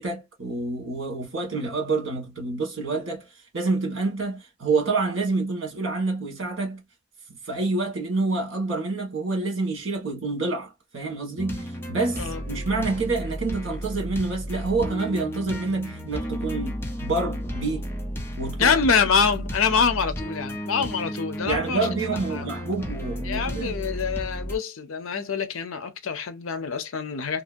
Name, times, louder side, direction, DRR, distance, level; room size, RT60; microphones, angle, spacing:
voice 1, 0.0-3.3 3.5-6.8 7.4-17.9 18.4-18.8 21.4-23.8, right 3 dB, 60° right, 1.5 m, -27 dB
sound 1, 11.4-24.6, equal, 10° left, 0.6 m, -33 dB
voice 2, 18.6-21.9 22.3-22.5 23.2-27.4, left 5 dB, 75° left, 0.6 m, -25 dB
3.0 x 2.7 x 2.5 m
head